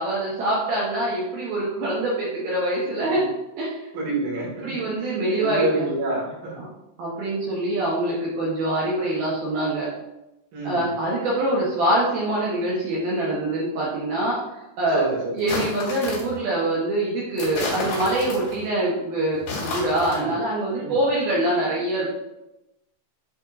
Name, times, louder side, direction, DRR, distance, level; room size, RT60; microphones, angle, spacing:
voice 1, 0.0-3.2 3.6-3.8 4.6-5.9 6.6-6.7 7.0-9.9 10.6-14.4 14.8-15.0 15.4-22.1, right 1 dB, 70° right, -6 dB, 2.4 m, -24 dB
voice 2, 3.9-5.1 5.4-6.6 10.5-10.9 14.9-15.6 20.1-20.3 20.8-20.9, right 1 dB, 55° right, -5 dB, 3.5 m, -28 dB
sound 1, 15.4-16.4 17.4-18.6 19.3-20.2, left 3 dB, 65° left, 4.0 m, -31 dB
9.3 x 4.4 x 2.6 m, 0.92 s
omnidirectional pair, 5.6 m